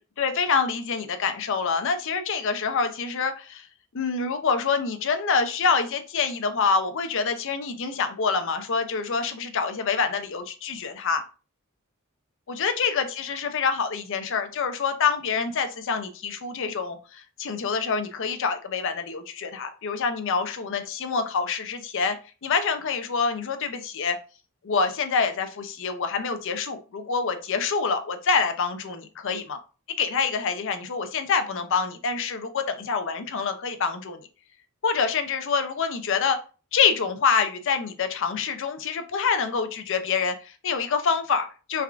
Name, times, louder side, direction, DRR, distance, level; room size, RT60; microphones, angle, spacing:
voice 1, 0.2-3.6 3.9-11.2 12.5-22.2 22.4-24.2 24.6-29.6 30.0-34.2 34.8-36.4 36.7-41.8, left 5 dB, 65° left, 8 dB, 0.5 m, -26 dB
3.5 x 2.4 x 3.4 m, 0.34 s
head